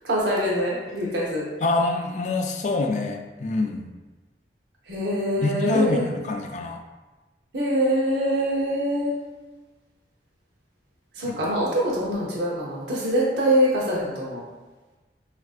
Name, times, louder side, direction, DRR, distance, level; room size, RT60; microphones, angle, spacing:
voice 1, 0.0-1.4 4.9-6.1 7.5-9.1 11.1-14.4, equal, 80° right, -5 dB, 0.7 m, -24 dB
voice 2, 1.6-3.9 5.4-6.8 11.2-11.5, left 2 dB, 40° left, 4 dB, 0.3 m, -26 dB
4.3 x 2.4 x 2.4 m, 1.2 s
head